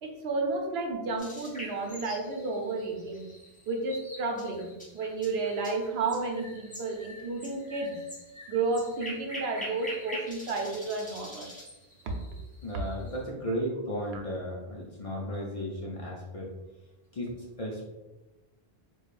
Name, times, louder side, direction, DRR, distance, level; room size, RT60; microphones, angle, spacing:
voice 1, 0.0-3.3 3.7-4.7 4.9-7.9 8.5-11.5 12.0-12.1 14.1-14.2, right 3 dB, 80° right, 2 dB, 0.9 m, -32 dB
sound 1, 1.2-13.2, equal, 10° left, 0.9 m, -45 dB
voice 2, 12.6-16.5 17.1-17.3 17.6-17.9, equal, 45° left, -3 dB, 0.5 m, -34 dB
4.6 x 2.3 x 2.4 m, 1.1 s
omnidirectional pair, 1.1 m